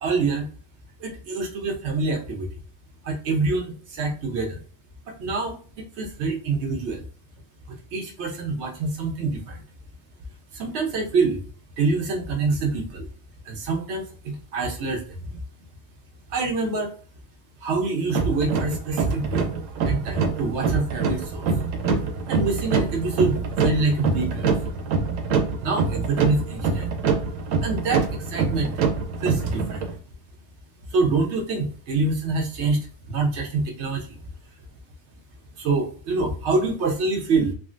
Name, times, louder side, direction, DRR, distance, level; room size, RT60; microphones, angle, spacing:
voice 1, 0.0-0.5 1.0-2.5 3.0-4.6 5.1-5.6 6.0-7.1 7.7-9.6 10.5-11.4 11.8-13.1 13.4-15.0 15.3-15.4 16.3-16.9 17.6-19.5 19.8-21.5 21.9-24.5 25.6-26.9 27.6-28.7 29.2-29.9 30.9-34.2 35.6-37.5, right 3 dB, 65° right, 3 dB, 1.0 m, -26 dB
sound 1, 18.1-29.9, right 4 dB, 85° right, 1.0 m, -25 dB
3.5 x 2.1 x 2.4 m, 0.42 s
omnidirectional pair, 1.3 m